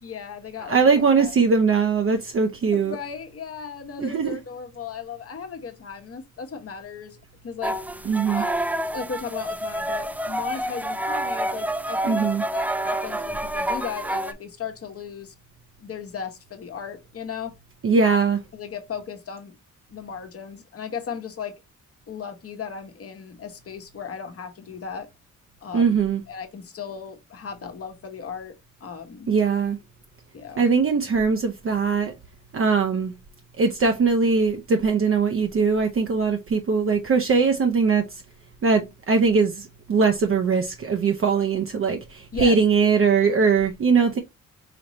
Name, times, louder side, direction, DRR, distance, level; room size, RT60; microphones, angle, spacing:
voice 1, 0.0-1.3 1.7-1.8 2.7-7.2 7.4-7.8 8.3-8.6 8.9-12.2 12.5-15.3 15.8-17.5 18.0-18.2 18.5-19.6 19.9-21.5 22.1-25.1 25.6-25.9 26.3-28.5 28.8-29.3 30.3-30.6 42.3-42.6, left 6 dB, 50° left, 1.0 m, -36 dB
voice 2, 0.7-3.0 4.0-4.4 8.0-8.4 12.1-12.4 17.8-18.4 25.7-26.2 29.3-29.8 30.6-32.1 32.5-33.1 33.6-38.2 38.6-44.2, right 5 dB, 45° right, 0.6 m, -21 dB
sound 1, 7.6-14.3, right 1 dB, 5° right, 0.4 m, -28 dB
5.0 x 3.0 x 2.9 m
cardioid pair, 90°, 30 cm